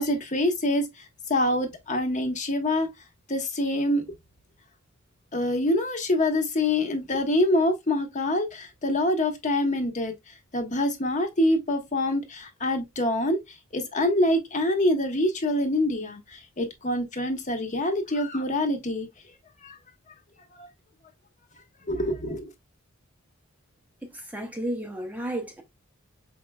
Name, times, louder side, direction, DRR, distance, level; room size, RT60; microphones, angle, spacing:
voice 1, 0.0-2.9 3.3-4.1 5.3-10.1 10.5-13.4 13.7-19.1 19.6-19.8 20.6-20.7 21.9-22.5, left 1 dB, 35° left, 1.0 m, -25 dB
voice 2, 24.1-25.6, right 1 dB, 10° right, 0.6 m, -32 dB
5.1 x 3.5 x 2.2 m
head